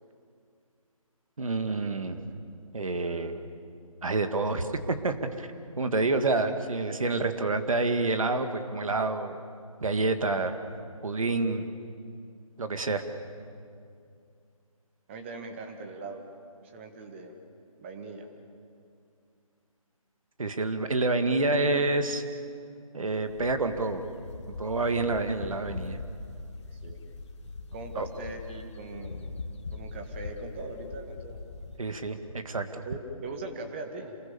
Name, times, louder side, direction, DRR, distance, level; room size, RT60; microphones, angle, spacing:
voice 1, 1.4-2.2 2.7-3.4 4.0-5.5 5.8-9.4 9.8-10.6 11.0-11.7 12.6-13.0 20.4-22.2 22.9-24.0 24.6-26.0 28.0-28.1 31.8-32.8, right 3 dB, 65° right, 8 dB, 2.1 m, -28 dB
voice 2, 15.1-16.2 16.6-17.3 17.8-18.3 26.7-27.0 27.7-29.3 29.7-31.4 32.9-34.2, right 2 dB, 20° right, 5 dB, 1.7 m, -40 dB
sound 1, 23.2-31.8, left 3 dB, 50° left, 1.9 m, -41 dB
27.5 x 20.5 x 7.1 m, 2.4 s
figure-of-eight pair, 160°, 18 cm